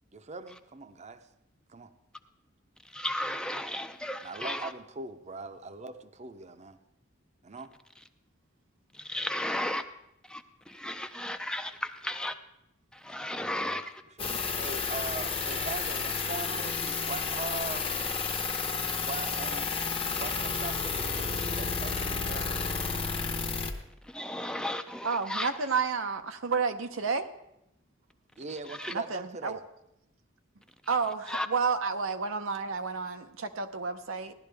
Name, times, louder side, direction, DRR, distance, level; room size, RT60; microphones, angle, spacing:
voice 1, 0.1-1.3 1.7-1.9 4.2-6.8 7.4-7.7 13.4-13.8 14.2-17.9 18.9-19.8 20.1-22.5 28.4-29.6, right 3 dB, 35° right, 0.7 m, -41 dB
voice 2, 2.8-4.7 8.9-9.8 10.2-12.3 12.9-14.0 24.0-25.5 28.7-28.9 31.3-31.5, left 1 dB, 5° left, 0.4 m, -34 dB
sound 1, 14.2-23.7, left 5 dB, 30° left, 0.9 m, -31 dB
voice 3, 25.0-27.3 28.9-29.6 30.9-34.3, right 5 dB, 90° right, 0.8 m, -31 dB
16.5 x 11.5 x 3.4 m
head